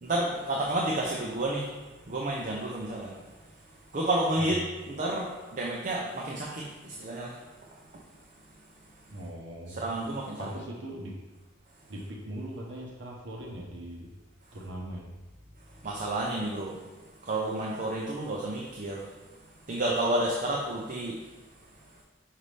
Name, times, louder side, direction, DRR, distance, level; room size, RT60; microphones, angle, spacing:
voice 1, 0.0-1.7 2.1-3.2 3.9-7.4 7.9-8.0 9.7-10.5 15.8-16.8 17.2-19.1 19.7-21.2, right 1 dB, 40° right, -3 dB, 0.7 m, -30 dB
voice 2, 9.1-9.8 10.4-11.2 11.9-14.1 14.5-15.1, right 1 dB, 70° right, -2 dB, 0.9 m, -40 dB
5.7 x 5.4 x 3.3 m, 1.2 s
head